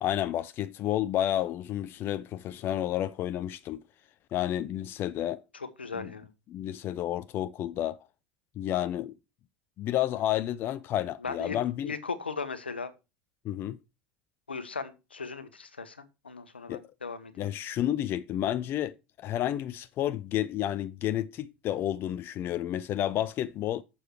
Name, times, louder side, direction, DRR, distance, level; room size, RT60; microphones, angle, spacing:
voice 1, 0.0-3.8 4.3-5.4 5.9-6.1 6.5-8.0 8.6-9.1 9.8-11.9 13.4-13.8 16.7-16.9 17.4-23.8, left 12 dB, 45° left, 0.6 m, -31 dB
voice 2, 5.5-6.3 11.2-11.6 11.9-12.9 14.5-16.0 16.2-17.3, left 5 dB, 85° left, 1.2 m, -37 dB
11.5 x 7.1 x 4.7 m
figure-of-eight pair, 75°, 6 cm